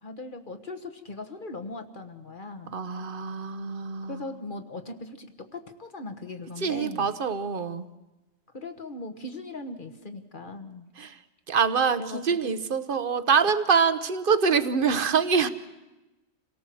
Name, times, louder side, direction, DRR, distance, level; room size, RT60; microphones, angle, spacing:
voice 1, 0.0-2.7 4.1-7.1 8.5-10.9 12.0-12.6, left 2 dB, 40° left, 8 dB, 1.6 m, -39 dB
voice 2, 2.7-4.2 6.6-7.9 11.0-11.1 11.5-15.5, right 6 dB, 45° right, 12 dB, 1.0 m, -25 dB
27.0 x 18.0 x 7.8 m, 1.1 s
omnidirectional pair, 1.3 m